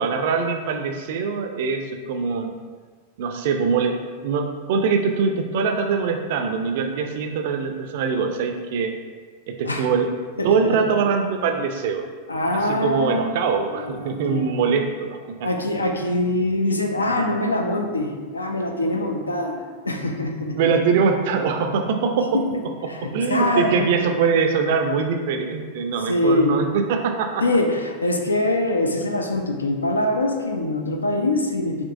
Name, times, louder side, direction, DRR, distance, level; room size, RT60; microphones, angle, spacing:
voice 1, 0.0-2.5 3.2-8.9 9.5-10.1 10.4-12.1 12.5-15.5 20.6-22.4 22.8-27.4, right 5 dB, 50° right, 5 dB, 0.4 m, -23 dB
voice 2, 10.4-10.8 12.3-13.3 13.7-14.6 15.4-20.6 22.3-22.5 22.9-24.0 26.1-26.6 27.4-31.8, left 1 dB, 80° left, 3 dB, 0.4 m, -23 dB
5.2 x 3.0 x 2.5 m, 1.5 s
figure-of-eight pair, 90°, 0 cm